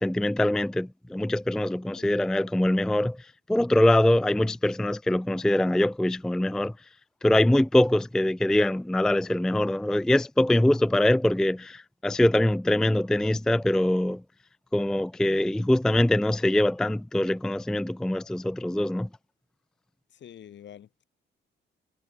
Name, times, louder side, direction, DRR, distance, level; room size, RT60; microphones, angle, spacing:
voice 1, 0.0-6.7 7.2-14.2 14.7-19.1, left 1 dB, 5° left, 0.4 m, -23 dB
voice 2, 20.1-21.0, left 10 dB, 65° left, 4.5 m, -47 dB
cardioid pair, 90°, 20 cm